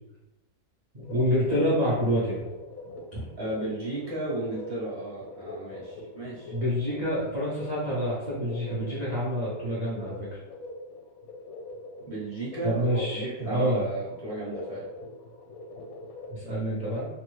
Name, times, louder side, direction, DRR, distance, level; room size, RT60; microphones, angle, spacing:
voice 1, 0.9-2.4 3.1-3.3 6.5-10.3 12.6-13.8 16.3-17.0, equal, 65° right, -7 dB, 0.4 m, -27 dB
sound 1, 1.0-16.4, left 2 dB, 70° left, 0.9 m, -43 dB
voice 2, 3.4-6.5 12.1-14.9, right 1 dB, 25° right, -7 dB, 0.9 m, -34 dB
3.4 x 2.0 x 3.0 m, 0.94 s
omnidirectional pair, 1.8 m